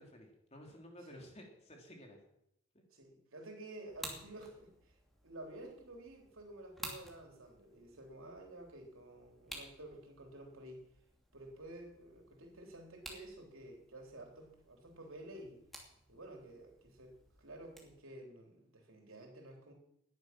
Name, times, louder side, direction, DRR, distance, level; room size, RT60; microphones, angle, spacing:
voice 1, 0.0-2.2 2.7-2.8, equal, 30° left, 2 dB, 3.3 m, -54 dB
voice 2, 2.9-5.0 5.2-10.8 11.3-15.6 16.1-19.7, right 1 dB, 70° right, 2 dB, 3.6 m, -52 dB
sound 1, 3.9-18.0, equal, ahead, 2.6 m, -54 dB
19.0 x 10.5 x 6.1 m, 0.78 s
head